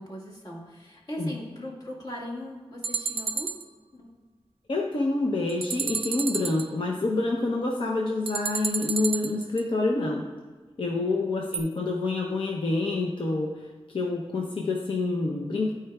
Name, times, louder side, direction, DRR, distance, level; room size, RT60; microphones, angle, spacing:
voice 1, 0.0-3.5 3.9-4.1 10.9-11.4, equal, 40° left, -4 dB, 1.9 m, -39 dB
sound 1, 2.8-3.6 5.5-6.7 8.3-9.6 11.5-11.6, right 5 dB, 60° right, 0.5 m, -31 dB
voice 2, 4.7-10.3 10.8-13.7 13.9-15.7, left 2 dB, 55° left, -1 dB, 0.8 m, -27 dB
13.5 x 4.7 x 2.4 m, 1.4 s
wide cardioid pair, 80°, 10 cm